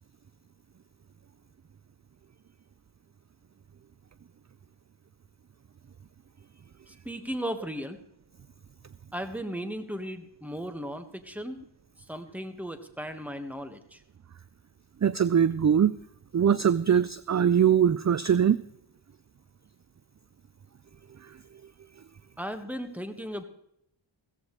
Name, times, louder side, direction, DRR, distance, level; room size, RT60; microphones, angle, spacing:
voice 1, 6.9-8.0 9.1-11.6 12.1-14.0 22.4-23.4, equal, 5° right, 7 dB, 1.6 m, -36 dB
voice 2, 15.0-15.9 16.3-18.6 21.2-21.3, right 8 dB, 40° right, 17 dB, 0.4 m, -22 dB
16.0 x 14.5 x 3.2 m, 0.76 s
wide cardioid pair, 50°, 48 cm